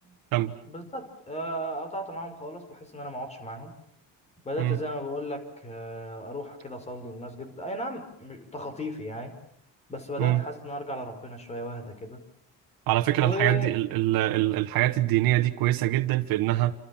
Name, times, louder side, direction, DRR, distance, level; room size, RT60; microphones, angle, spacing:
voice 1, 0.7-3.8 4.4-9.3 9.9-12.2 13.2-13.7, equal, 20° left, 9 dB, 5.3 m, -35 dB
voice 2, 12.9-16.7, right 15 dB, 75° right, 5 dB, 1.6 m, -24 dB
28.5 x 26.5 x 7.4 m, 0.67 s
cardioid pair, 175°, 35 cm